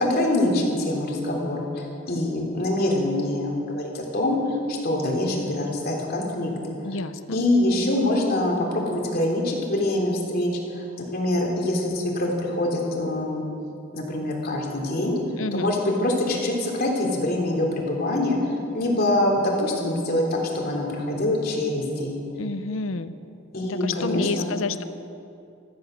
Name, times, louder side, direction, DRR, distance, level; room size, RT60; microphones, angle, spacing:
voice 1, 0.0-6.8 7.3-13.5 13.9-15.2 15.5-22.2 23.5-24.5, left 1 dB, 50° left, -1 dB, 3.2 m, -25 dB
voice 2, 6.8-7.4 15.4-15.7 22.4-23.2 23.7-24.8, left 3 dB, 75° left, 12 dB, 0.8 m, -29 dB
15.5 x 14.0 x 6.6 m, 2.6 s
head